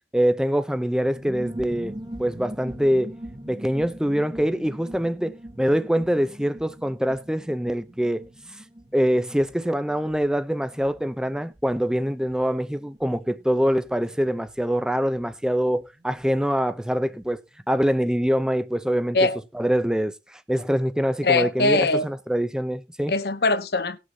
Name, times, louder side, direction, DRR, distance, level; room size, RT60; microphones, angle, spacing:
voice 1, 0.1-3.1 3.5-8.3 8.9-17.4 17.7-19.2 19.5-23.1, equal, 5° right, 0.5 m, -24 dB
sound 1, 1.0-17.3 17.6-17.7 17.9-18.3, right 1 dB, 25° right, 1.0 m, -43 dB
voice 2, 21.2-22.1 23.1-24.0, left 3 dB, 60° left, 0.8 m, -21 dB
18.5 x 6.3 x 2.8 m
head